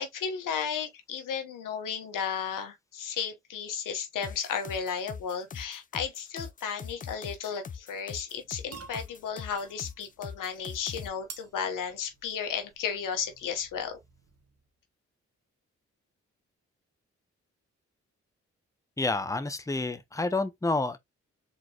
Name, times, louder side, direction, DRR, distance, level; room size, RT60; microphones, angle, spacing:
voice 1, 0.0-14.0, left 7 dB, 85° left, 1.0 m, -34 dB
sound 1, 4.2-11.1, left 6 dB, 25° left, 0.4 m, -42 dB
sound 2, 8.3-14.7, right 5 dB, 50° right, 1.1 m, -52 dB
voice 2, 19.0-21.0, left 2 dB, 10° left, 0.7 m, -29 dB
4.0 x 3.0 x 2.8 m
supercardioid pair, 40°, 31 cm